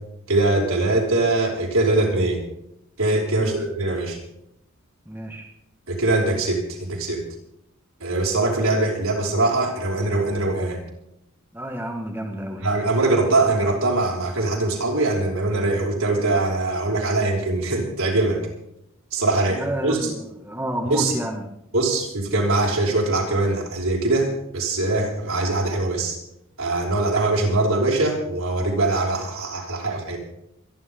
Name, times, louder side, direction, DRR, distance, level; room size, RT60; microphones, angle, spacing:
voice 1, 0.3-2.4 3.0-4.2 5.9-7.2 8.0-10.8 12.6-18.5 19.1-20.1 20.8-21.1 21.7-26.2 26.6-30.2, right 2 dB, 85° right, -3 dB, 5.7 m, -22 dB
voice 2, 5.1-5.5 11.5-12.7 19.5-21.5, equal, 10° right, 1 dB, 2.0 m, -30 dB
28.0 x 11.0 x 3.9 m, 0.78 s
head